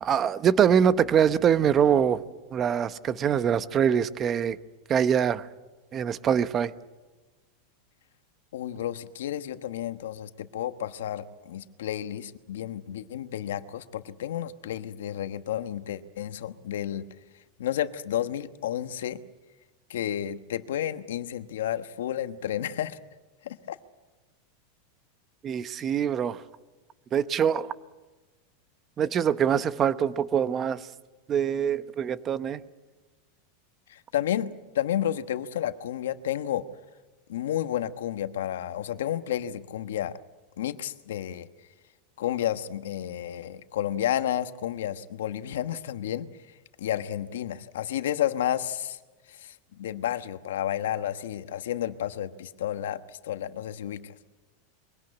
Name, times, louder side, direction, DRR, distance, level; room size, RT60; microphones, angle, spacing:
voice 1, 0.0-2.2 2.5-4.6 4.9-5.4 5.9-6.7 25.4-26.4 27.1-27.7 29.0-30.8 31.3-32.6, right 8 dB, 25° right, 14 dB, 0.9 m, -24 dB
voice 2, 8.5-17.0 17.6-19.2 19.9-23.0 23.4-23.8 33.9-36.6 37.3-40.2 40.6-41.5 42.2-46.3 46.8-49.0 49.3-54.1, left 11 dB, 90° left, 11 dB, 1.1 m, -31 dB
23.0 x 17.5 x 9.8 m, 1.2 s
supercardioid pair, 140°, 0 cm